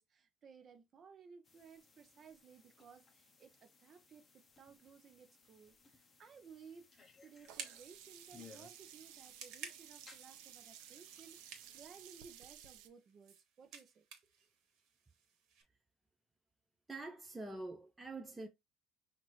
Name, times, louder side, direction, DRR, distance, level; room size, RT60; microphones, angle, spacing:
voice 1, 0.0-14.1, right 6 dB, 35° right, 0.7 m, -59 dB
sound 1, 1.4-12.3, left 5 dB, 20° left, 0.7 m, -64 dB
sound 2, 6.4-15.6, right 6 dB, 60° right, 1.3 m, -56 dB
Sink (filling or washing), 7.5-12.9, right 11 dB, 80° right, 0.7 m, -56 dB
voice 2, 16.9-18.5, right 2 dB, 10° right, 0.4 m, -45 dB
5.8 x 2.6 x 3.1 m
cardioid pair, 150°, 0 cm